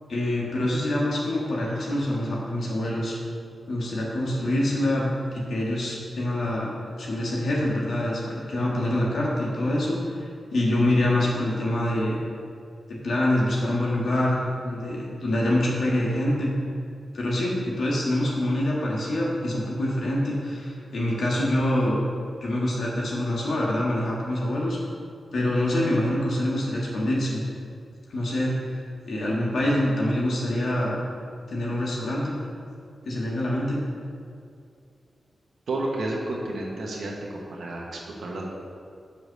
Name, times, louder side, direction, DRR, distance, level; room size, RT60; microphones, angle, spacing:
voice 1, 0.1-3.2 3.7-6.7 7.0-10.1 10.5-12.2 13.0-16.5 17.1-22.0 22.4-24.8 25.3-27.4 28.1-28.8 29.1-31.0 31.5-32.4 33.1-33.8, left 1 dB, 80° left, -4 dB, 1.8 m, -25 dB
voice 2, 35.7-38.5, right 2 dB, 85° right, -3 dB, 1.1 m, -31 dB
5.7 x 5.1 x 6.7 m, 2.3 s
wide cardioid pair, 85°, 0 cm